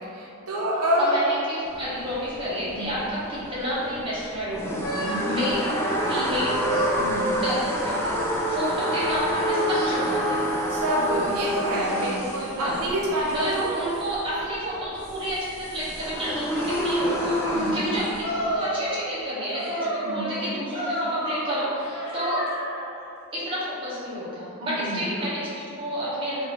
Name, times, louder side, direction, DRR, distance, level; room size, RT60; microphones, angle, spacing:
voice 1, 0.1-1.1 2.7-2.9 5.0-5.3 7.0-7.4 10.7-13.7 17.5-17.8 20.0-20.3 24.7-25.0, equal, 80° right, -4 dB, 0.5 m, -27 dB
voice 2, 1.0-6.8 7.1-10.5 12.5-12.8 13.3-22.4 23.3-26.4, equal, 25° right, -10 dB, 0.9 m, -30 dB
sound 1, 1.7-18.5, equal, 10° left, 0.3 m, -28 dB
sound 2, 4.8-9.3 9.7-11.2 11.8-12.8 13.1-14.2 14.7-17.6 18.2-19.2 19.5-23.0, equal, 75° left, 1.0 m, -33 dB
3.2 x 2.5 x 3.1 m, 2.6 s
head